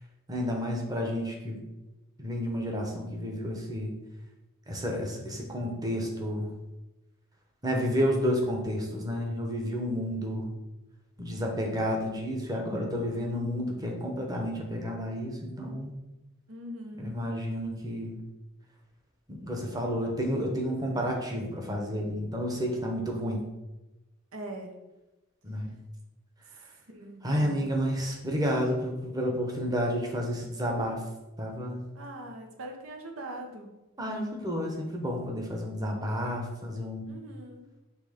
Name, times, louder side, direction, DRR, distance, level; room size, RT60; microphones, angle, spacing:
voice 1, 0.3-1.6 2.2-3.9 4.7-6.5 7.6-10.5 11.2-15.9 17.0-18.2 19.3-23.5 25.4-25.7 27.2-31.0 31.4-31.8 34.0-37.1, equal, 20° right, 1 dB, 0.9 m, -31 dB
voice 2, 16.5-17.2 24.3-24.7 26.5-27.7 31.9-33.8 37.0-37.6, right 1 dB, 80° right, 2 dB, 1.0 m, -42 dB
6.1 x 3.2 x 5.0 m, 1.0 s
head